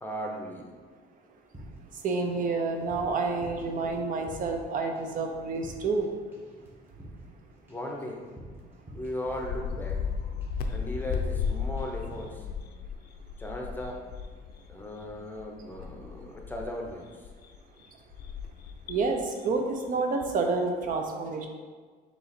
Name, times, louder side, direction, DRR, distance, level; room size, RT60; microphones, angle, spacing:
voice 1, 0.0-0.7 7.7-8.3 8.9-10.0 10.7-12.5 13.4-14.1 14.7-17.3, equal, 10° left, 0 dB, 0.7 m, -37 dB
sound 1, 1.5-2.5 2.7-4.7 5.0-5.3 5.5-6.1 6.3-10.1 10.4-10.7 11.0-11.5 11.8-12.4, right 1 dB, 10° right, 1.2 m, -48 dB
voice 2, 2.0-6.1 18.9-19.2 19.4-19.6 19.9-21.5, right 4 dB, 50° right, 3 dB, 0.5 m, -29 dB
sound 2, 9.4-16.9 17.2-19.4 19.9-20.0 20.4-20.6, left 6 dB, 65° left, 0.4 m, -35 dB
3.8 x 2.9 x 4.2 m, 1.5 s
cardioid pair, 110°, 17 cm